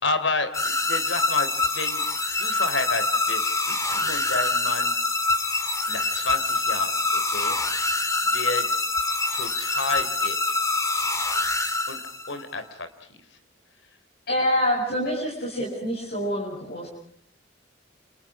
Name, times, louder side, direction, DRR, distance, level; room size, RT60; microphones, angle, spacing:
voice 1, 0.0-2.0 2.4-4.9 5.9-7.6 8.3-8.7 9.3-10.6 11.9-12.0 12.3-13.2, left 3 dB, 70° left, 10 dB, 3.6 m, -31 dB
sound 1, 0.5-12.4, left 3 dB, 15° left, 2.8 m, -25 dB
voice 2, 14.3-16.9, equal, 55° left, -2 dB, 7.8 m, -26 dB
30.0 x 30.0 x 4.9 m, 0.65 s
head